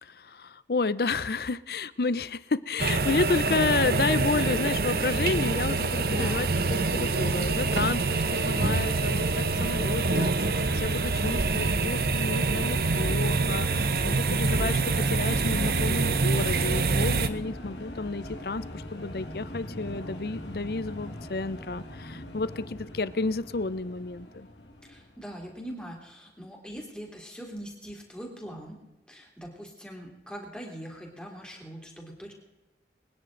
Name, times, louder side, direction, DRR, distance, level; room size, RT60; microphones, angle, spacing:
voice 1, 0.0-24.5, left 3 dB, 60° left, 17 dB, 0.6 m, -31 dB
sound 1, 2.8-17.3, right 3 dB, 55° right, 0.8 m, -26 dB
voice 2, 6.1-6.5 24.8-28.8 29.1-32.3, equal, 5° left, -1 dB, 3.2 m, -42 dB
sound 2, 7.0-13.0, right 2 dB, 85° right, 1.0 m, -40 dB
sound 3, 11.6-25.7, left 1 dB, 90° left, 2.2 m, -42 dB
24.5 x 10.0 x 3.9 m, 1.0 s
head